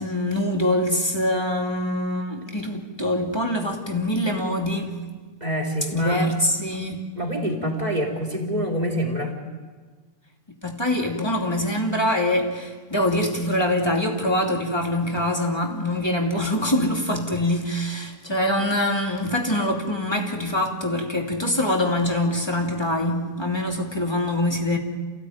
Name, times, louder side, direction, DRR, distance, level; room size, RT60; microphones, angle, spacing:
voice 1, 0.0-5.0 5.9-7.0 10.6-24.8, left 1 dB, 15° left, 1 dB, 2.7 m, -24 dB
voice 2, 5.4-6.2 7.2-9.4, equal, 25° right, 0 dB, 3.8 m, -26 dB
28.5 x 16.5 x 9.3 m, 1.4 s
omnidirectional pair, 1.6 m